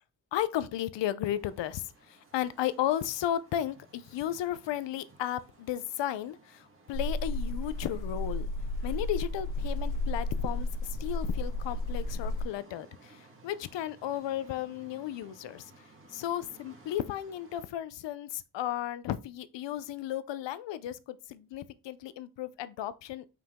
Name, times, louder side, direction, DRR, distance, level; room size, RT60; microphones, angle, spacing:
voice 1, 0.3-8.5 8.8-15.7 16.1-23.3, left 12 dB, 85° left, 0.7 m, -34 dB
sound 1, 1.3-17.6, right 2 dB, 30° right, 1.6 m, -58 dB
sound 2, 6.9-12.4, left 2 dB, 50° left, 2.2 m, -33 dB
5.8 x 5.0 x 3.6 m
wide cardioid pair, 170°, 42 cm